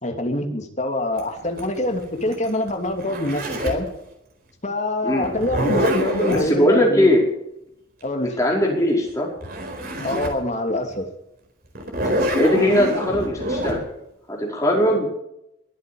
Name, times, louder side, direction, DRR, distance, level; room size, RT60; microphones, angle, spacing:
voice 1, 0.0-3.9 4.6-7.2 8.0-8.4 10.0-11.0, left 1 dB, 35° left, 4 dB, 2.8 m, -25 dB
Zipper (clothing), 1.2-3.9 5.2-6.5 9.1-9.2 9.4-10.4 10.9-11.0 11.8-13.8, equal, 50° right, 4.4 m, -25 dB
voice 2, 6.2-7.3 8.2-9.3 12.3-13.8 14.3-15.1, equal, 15° left, -1 dB, 5.1 m, -19 dB
22.5 x 8.4 x 7.1 m, 0.83 s
head